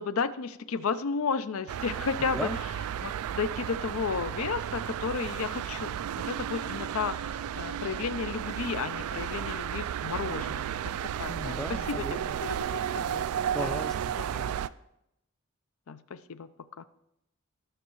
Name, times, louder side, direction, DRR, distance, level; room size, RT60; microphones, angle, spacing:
voice 1, 0.0-2.5 3.0-11.6 11.9-13.8 15.9-16.5 16.8-16.9, left 5 dB, 70° left, 13 dB, 0.5 m, -33 dB
sound 1, 1.7-14.7, right 9 dB, 80° right, 0.3 m, -33 dB
voice 2, 11.3-12.4 13.5-14.5, equal, ahead, 9 dB, 0.4 m, -37 dB
19.0 x 6.4 x 3.1 m, 0.82 s
head